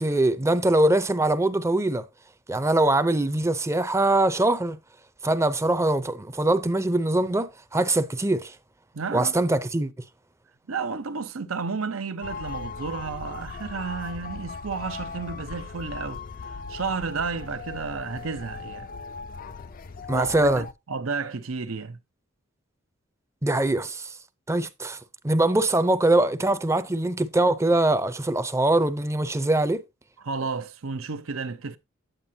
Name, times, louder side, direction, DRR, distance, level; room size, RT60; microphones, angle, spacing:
voice 1, 0.0-2.1 2.5-4.8 5.2-8.6 9.1-9.9 20.1-20.6 23.4-24.2 24.5-25.0 25.2-29.8, right 2 dB, 15° right, 0.6 m, -23 dB
voice 2, 8.9-9.3 10.7-18.9 20.1-22.0 30.2-31.8, right 4 dB, 80° right, 0.8 m, -32 dB
sound 1, 12.2-20.7, left 4 dB, 45° left, 0.5 m, -38 dB
9.0 x 8.5 x 2.7 m
head